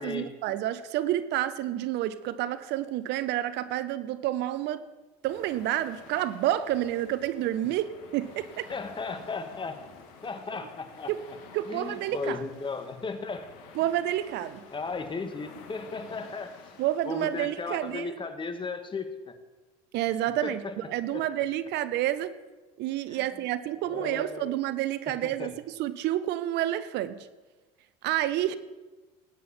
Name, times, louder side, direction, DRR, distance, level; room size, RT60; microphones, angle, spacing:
voice 1, 0.0-4.8 5.2-8.7 11.1-11.2 11.5-12.4 13.8-14.6 16.8-18.1 19.9-20.6 20.9-22.3 22.8-27.2 28.0-28.6, right 13 dB, 60° right, 15 dB, 0.7 m, -29 dB
sound 1, 5.3-18.0, left 6 dB, 70° left, 2.0 m, -51 dB
voice 2, 8.7-9.8 10.2-11.1 11.6-13.5 14.7-16.5 17.0-19.3 20.4-20.8 21.1-21.2 23.1-23.3 23.8-24.6 25.2-25.5, left 4 dB, 25° left, 8 dB, 1.7 m, -36 dB
19.0 x 9.4 x 4.3 m, 1.2 s
hypercardioid pair, 75°, 20 cm